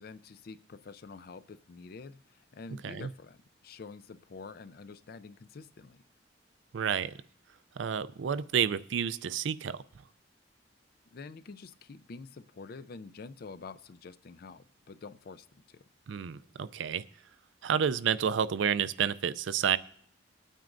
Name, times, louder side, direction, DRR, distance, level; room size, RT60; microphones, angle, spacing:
voice 1, 0.0-6.0 11.1-15.8, left 4 dB, 55° left, 14 dB, 0.4 m, -47 dB
voice 2, 6.7-7.1 7.8-9.8 16.1-17.0 17.6-19.8, right 8 dB, 75° right, 16 dB, 0.4 m, -30 dB
20.5 x 9.0 x 2.6 m, 0.66 s
head